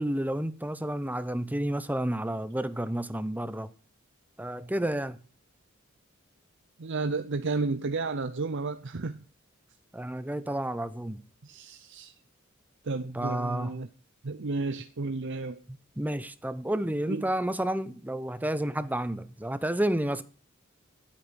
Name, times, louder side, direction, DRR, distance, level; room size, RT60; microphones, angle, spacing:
voice 1, 0.0-3.7 4.4-5.2 9.9-11.2 13.1-13.8 15.7-20.2, right 1 dB, 10° right, 0.8 m, -30 dB
voice 2, 6.8-9.2 11.4-12.1 12.8-13.9 14.2-15.6 17.1-17.2, right 3 dB, 60° right, 0.7 m, -32 dB
12.5 x 8.7 x 6.4 m
head